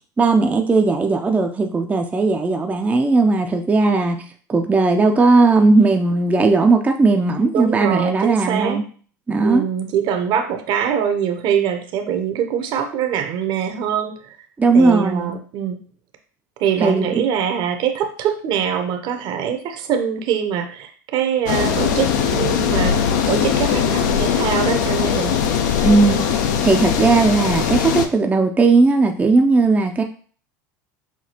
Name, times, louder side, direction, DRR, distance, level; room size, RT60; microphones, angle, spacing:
voice 1, 0.2-4.2 4.5-8.8 9.3-9.6 14.6-15.3 16.8-17.1 25.8-30.0, right 3 dB, 15° right, 3 dB, 0.4 m, -17 dB
voice 2, 7.5-8.8 9.4-14.4 14.7-15.8 16.6-25.4, right 8 dB, 50° right, 7 dB, 0.7 m, -23 dB
sound 1, 21.5-28.1, left 8 dB, 75° left, 0.5 m, -20 dB
5.8 x 2.3 x 2.8 m, 0.44 s
hypercardioid pair, 85°, 10 cm